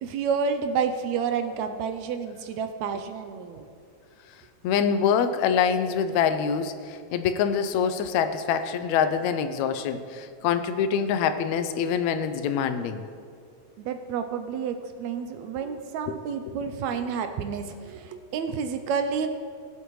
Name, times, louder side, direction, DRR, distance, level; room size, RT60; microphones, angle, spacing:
voice 1, 0.0-3.7 13.8-19.3, right 6 dB, 80° right, 8 dB, 1.8 m, -30 dB
voice 2, 4.6-13.0 16.1-16.2 16.5-16.6, left 7 dB, 80° left, 9 dB, 1.8 m, -25 dB
19.5 x 8.0 x 3.1 m, 2.2 s
omnidirectional pair, 3.3 m